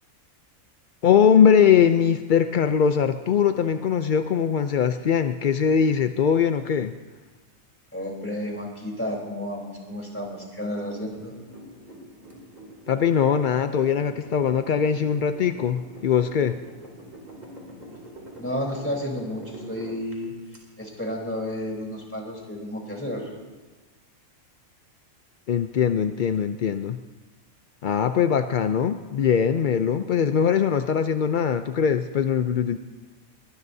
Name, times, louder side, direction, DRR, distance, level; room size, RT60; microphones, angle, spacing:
voice 1, 1.0-6.9 12.9-16.5 25.5-27.0 27.8-32.8, left 7 dB, 60° left, 9 dB, 0.5 m, -21 dB
voice 2, 7.9-11.3 18.4-20.3 20.8-23.3, left 1 dB, 10° left, -2 dB, 3.7 m, -31 dB
sound 1, 11.1-20.6, right 1 dB, 30° right, 3.2 m, -44 dB
22.0 x 20.5 x 2.7 m, 1.3 s
omnidirectional pair, 1.4 m